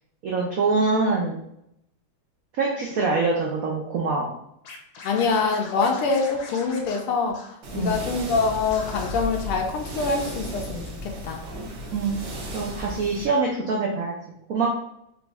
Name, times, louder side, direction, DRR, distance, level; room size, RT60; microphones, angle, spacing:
voice 1, 0.2-1.4 2.6-4.3 7.7-8.0 11.9-12.2 12.5-14.1 14.5-14.7, right 3 dB, 85° right, -1 dB, 0.7 m, -24 dB
Scratching (performance technique), 4.6-8.0 8.3-8.4 8.7-9.2, left 3 dB, 65° left, 1.1 m, -42 dB
voice 2, 5.0-7.4 7.7-11.4, left 4 dB, 85° left, 1 dB, 1.6 m, -25 dB
sound 1, 7.6-13.3, equal, 60° right, 1.2 m, -35 dB
5.1 x 2.6 x 3.4 m, 0.75 s
omnidirectional pair, 2.4 m